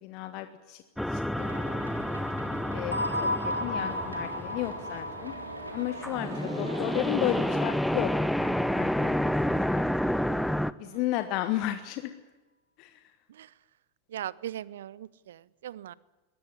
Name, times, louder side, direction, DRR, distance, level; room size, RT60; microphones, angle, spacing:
voice 1, 0.0-0.8 1.1-1.9 2.7-5.3 5.7-8.1 8.4-9.3 9.7-9.8 10.8-12.1 12.8-12.9, left 14 dB, 40° left, 9 dB, 1.3 m, -33 dB
sound 1, 1.0-5.8 6.0-10.7, equal, ahead, 0.7 m, -29 dB
sound 2, 1.4-7.6, right 3 dB, 80° right, 3.5 m, -43 dB
sound 3, 2.9-7.5, left 1 dB, 90° left, 1.1 m, -34 dB
voice 2, 14.1-15.9, right 11 dB, 60° right, 22 dB, 0.7 m, -39 dB
21.5 x 18.0 x 10.0 m, 1.2 s
figure-of-eight pair, 90°, 0 cm